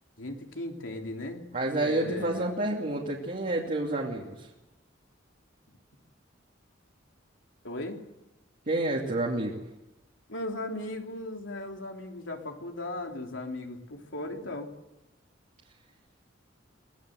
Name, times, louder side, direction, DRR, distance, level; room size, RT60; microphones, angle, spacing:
voice 1, 0.2-2.5 7.6-8.0 10.3-14.7, left 1 dB, 80° left, 2 dB, 3.3 m, -37 dB
voice 2, 1.5-4.5 8.7-9.6, right 2 dB, 45° right, -3 dB, 2.7 m, -29 dB
23.5 x 18.0 x 7.9 m, 0.97 s
head